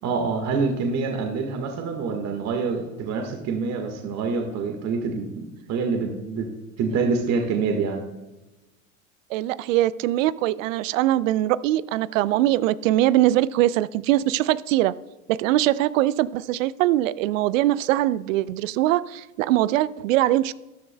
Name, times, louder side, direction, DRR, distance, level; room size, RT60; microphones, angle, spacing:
voice 1, 0.0-6.5 6.8-8.0, right 4 dB, 40° right, 3 dB, 1.6 m, -26 dB
voice 2, 9.3-15.0 15.3-20.5, right 14 dB, 70° right, 19 dB, 0.5 m, -22 dB
13.5 x 11.0 x 2.3 m, 1.1 s
hypercardioid pair, 100°, 40 cm